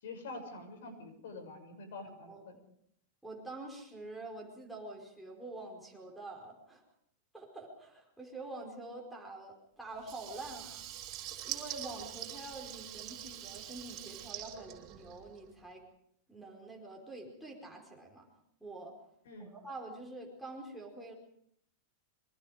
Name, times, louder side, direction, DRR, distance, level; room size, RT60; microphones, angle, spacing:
voice 1, 0.0-2.5 19.3-19.5, left 3 dB, 75° left, 7 dB, 7.0 m, -46 dB
voice 2, 2.1-2.6 3.2-6.8 7.3-10.8 11.4-15.8 16.3-18.3 18.6-18.9 19.4-21.1, right 2 dB, ahead, -2 dB, 4.9 m, -46 dB
Water tap faucet / Liquid, 10.0-15.5, right 12 dB, 30° right, 5.1 m, -44 dB
26.5 x 24.0 x 5.1 m, 0.69 s
supercardioid pair, 155°, 0 cm